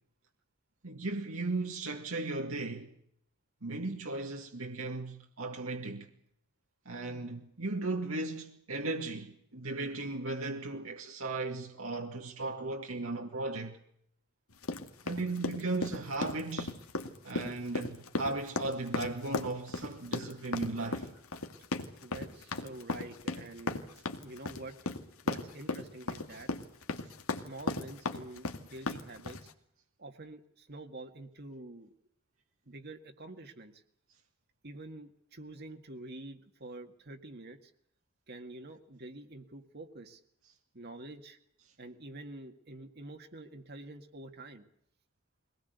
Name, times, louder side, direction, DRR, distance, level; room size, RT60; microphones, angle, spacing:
voice 1, 0.8-2.9 3.6-6.1 6.9-13.8 15.0-16.8 17.2-21.1, right 2 dB, 80° right, 2.2 m, -36 dB
sound 1, 14.6-29.5, left 2 dB, 90° left, 2.2 m, -36 dB
voice 2, 22.0-23.9 24.2-24.8 25.2-26.5 27.3-29.5 30.0-31.9 32.7-33.8 34.6-37.7 38.3-40.2 40.7-41.4 41.8-44.7, right 2 dB, 50° right, 1.9 m, -47 dB
23.0 x 19.0 x 8.1 m
head